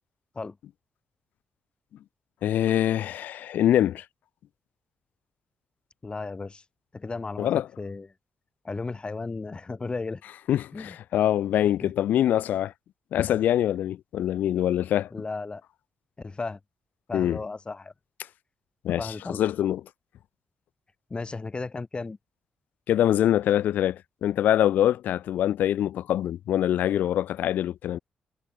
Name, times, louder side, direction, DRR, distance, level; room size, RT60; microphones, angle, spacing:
voice 1, 2.4-4.0 7.4-7.7 10.5-12.7 13.1-15.1 17.1-17.4 18.8-19.8 22.9-28.0, left 11 dB, 80° left, 0.6 m, -24 dB
voice 2, 6.0-6.6 6.9-7.5 7.8-8.1 8.6-10.2 10.7-11.0 11.8-11.9 15.1-15.6 16.2-16.6 17.1-17.9 19.0-19.4 21.1-22.2, left 3 dB, 35° left, 5.6 m, -34 dB
supercardioid pair, 55°, 3 cm